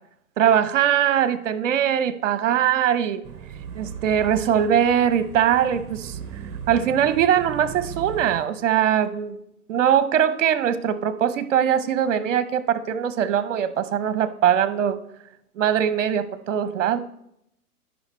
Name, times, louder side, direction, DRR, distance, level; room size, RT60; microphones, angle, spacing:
voice 1, 0.4-3.2 3.8-6.2 6.7-9.4 9.7-15.0 15.6-17.0, right 9 dB, 55° right, 14 dB, 0.8 m, -21 dB
sound 1, 3.2-8.5, right 8 dB, 25° right, 0.9 m, -37 dB
10.5 x 5.7 x 4.3 m, 0.79 s
hypercardioid pair, 135°, 46 cm